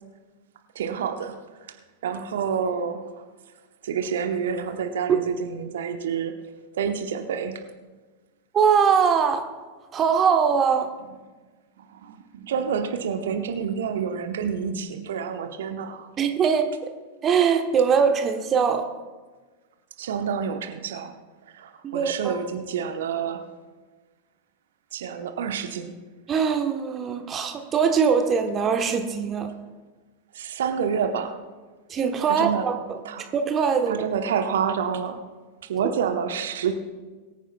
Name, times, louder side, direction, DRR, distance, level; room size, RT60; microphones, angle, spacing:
voice 1, 0.7-1.3 2.0-3.0 3.8-6.3 6.7-7.6 11.8-16.1 20.0-21.1 21.5-23.4 24.9-25.9 30.3-31.3 32.3-32.6 33.0-33.3 33.9-35.2 35.6-36.7, right 7 dB, 60° right, 6 dB, 1.0 m, -28 dB
voice 2, 8.5-9.4 9.9-10.9 16.2-16.9 17.2-18.8 21.8-22.4 26.3-29.5 31.9-33.0 33.3-34.0, right 6 dB, 25° right, 6 dB, 1.1 m, -22 dB
23.0 x 9.7 x 2.3 m, 1.3 s
figure-of-eight pair, 90°, 0 cm